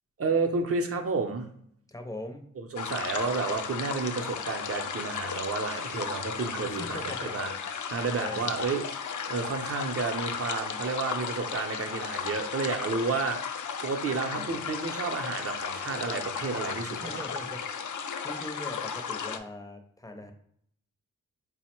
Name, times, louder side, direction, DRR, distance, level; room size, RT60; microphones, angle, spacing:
voice 1, 0.2-1.5 2.6-7.5 7.9-9.0 9.3-17.1, right 4 dB, 50° right, 4 dB, 0.6 m, -31 dB
voice 2, 1.9-2.5 6.6-7.4 8.2-8.6 14.3-14.7 16.9-20.3, left 1 dB, 10° left, 4 dB, 0.5 m, -41 dB
sound 1, 2.8-19.4, left 6 dB, 70° left, 0.4 m, -35 dB
4.5 x 2.0 x 4.3 m, 0.66 s
wide cardioid pair, 145°, 31 cm